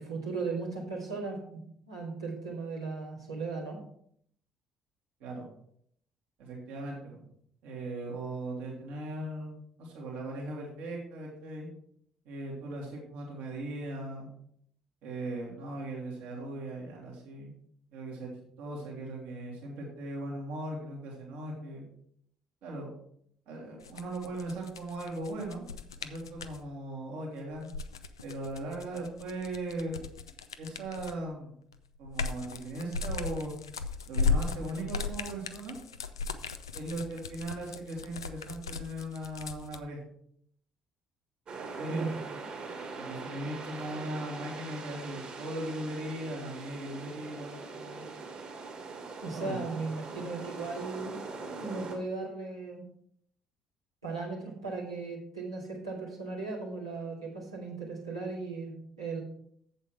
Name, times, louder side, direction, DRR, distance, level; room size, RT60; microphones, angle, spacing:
voice 1, 0.0-1.6 1.9-3.8 41.9-42.2 49.2-51.2 51.6-52.8 54.0-59.2, right 4 dB, 85° right, -5 dB, 2.3 m, -37 dB
voice 2, 6.4-7.2 7.6-11.7 12.3-14.3 15.0-17.5 17.9-18.3 18.6-21.9 22.6-22.9 23.5-25.7 26.0-27.7 28.2-30.0 30.6-31.6 32.0-33.5 34.1-35.8 36.7-40.0 41.8-42.1 43.0-48.1 49.3-49.6, right 1 dB, 60° right, -2 dB, 2.5 m, -38 dB
sound 1, 23.8-26.6 27.5-31.3 31.7-39.8, left 4 dB, 80° left, 0.4 m, -36 dB
sound 2, 41.5-52.0, right 4 dB, 45° right, 2.3 m, -42 dB
8.0 x 7.6 x 4.5 m, 0.67 s
figure-of-eight pair, 50°, 2 cm